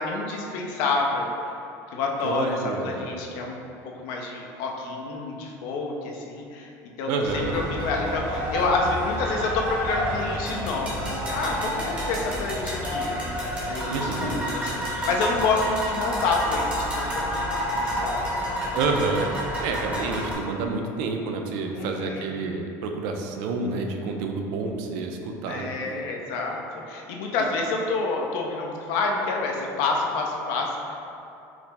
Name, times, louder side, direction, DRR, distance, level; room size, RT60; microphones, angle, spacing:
voice 1, 0.0-1.5 1.9-6.7 7.0-17.2 17.5-18.1 19.9-20.2 21.7-22.3 25.5-26.6 26.9-31.0, left 3 dB, 80° left, 0 dB, 0.6 m, -28 dB
voice 2, 2.2-3.2 7.1-7.6 13.9-14.4 18.7-19.3 19.6-25.8, right 3 dB, 75° right, 3 dB, 0.4 m, -28 dB
sound 1, 7.2-20.3, equal, 15° right, 1.0 m, -29 dB
sound 2, 12.3-19.6, left 2 dB, 15° left, 0.5 m, -42 dB
4.8 x 2.0 x 3.3 m, 2.7 s
cardioid pair, 135°, 8 cm